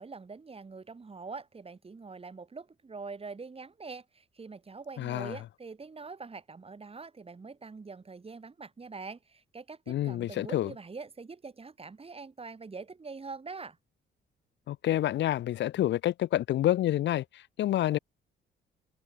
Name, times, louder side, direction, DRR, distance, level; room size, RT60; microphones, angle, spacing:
voice 1, 0.0-13.8, right 4 dB, 30° right, 4.6 m, -44 dB
voice 2, 5.0-5.4 9.9-10.7 14.7-18.0, left 13 dB, 65° left, 0.5 m, -28 dB
cardioid pair, 90°, 20 cm